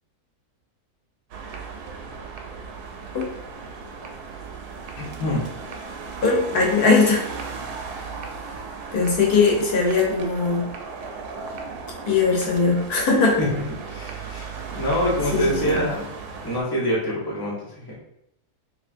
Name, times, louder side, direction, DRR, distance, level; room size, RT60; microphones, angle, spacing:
sound 1, 1.3-16.6, right 5 dB, 85° right, 1.1 m, -36 dB
voice 1, 5.0-5.4 13.4-13.5 13.9-16.1 16.4-17.9, equal, 20° left, -5 dB, 0.7 m, -25 dB
voice 2, 6.2-7.2 8.9-10.7 12.1-13.3 15.3-15.8, left 4 dB, 85° left, -2 dB, 1.5 m, -20 dB
3.5 x 3.1 x 2.5 m, 0.79 s
omnidirectional pair, 1.6 m